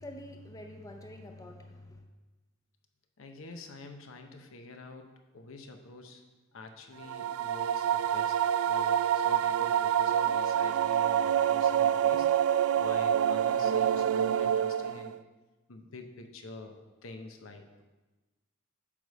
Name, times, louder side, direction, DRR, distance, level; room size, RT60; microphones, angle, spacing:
voice 1, 0.0-2.0, left 1 dB, 15° left, 3 dB, 0.6 m, -46 dB
voice 2, 3.2-5.1 5.3-6.2 6.5-8.3 8.6-12.3 12.8-15.1 15.7-16.7 17.0-17.8, left 2 dB, 75° left, 5 dB, 0.7 m, -47 dB
sound 1, 7.0-15.2, right 9 dB, 80° right, 0.3 m, -27 dB
8.5 x 3.4 x 6.3 m, 1.2 s
head